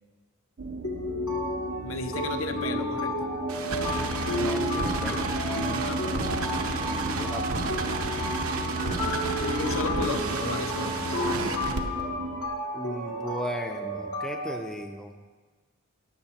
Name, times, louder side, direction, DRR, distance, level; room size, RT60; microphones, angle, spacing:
sound 1, 0.6-12.5, right 2 dB, 50° right, 0.5 m, -37 dB
sound 2, 0.8-14.6, left 1 dB, 85° left, 2.1 m, -32 dB
voice 1, 1.8-3.1 5.5-6.4 9.6-11.1, left 3 dB, 65° left, 6 dB, 0.7 m, -34 dB
sound 3, 3.5-11.8, right 2 dB, 80° right, 0.9 m, -31 dB
voice 2, 4.4-5.3 6.9-7.8 12.7-15.1, equal, 5° left, 3 dB, 0.5 m, -36 dB
14.0 x 10.5 x 2.9 m, 1.4 s
head